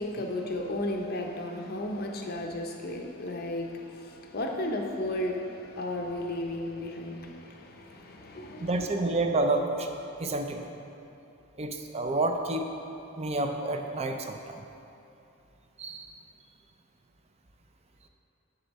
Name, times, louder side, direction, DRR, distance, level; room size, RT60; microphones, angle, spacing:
voice 1, 0.0-8.9, left 1 dB, 45° left, 2 dB, 0.6 m, -34 dB
voice 2, 8.6-9.9 10.2-10.6 11.6-12.7 13.2-14.6 15.8-16.1, right 2 dB, 30° right, 5 dB, 0.4 m, -29 dB
7.1 x 6.8 x 4.1 m, 2.8 s
head